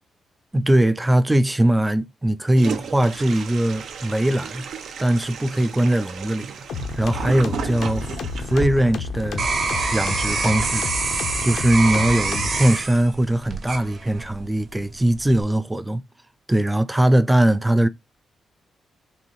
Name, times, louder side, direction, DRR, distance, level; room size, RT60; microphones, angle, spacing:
voice 1, 0.5-4.7 5.0-6.5 6.9-8.1 8.5-9.5 9.9-10.9 11.4-16.0 16.5-17.9, right 1 dB, 10° right, 0.3 m, -20 dB
Toilet flush, 2.6-8.6, right 7 dB, 65° right, 0.6 m, -34 dB
sound 1, 6.7-12.7, left 4 dB, 75° left, 0.8 m, -31 dB
sound 2, 8.3-14.4 15.0-15.4, right 4 dB, 45° right, 1.0 m, -26 dB
4.0 x 3.2 x 3.0 m
wide cardioid pair, 165°, 0 cm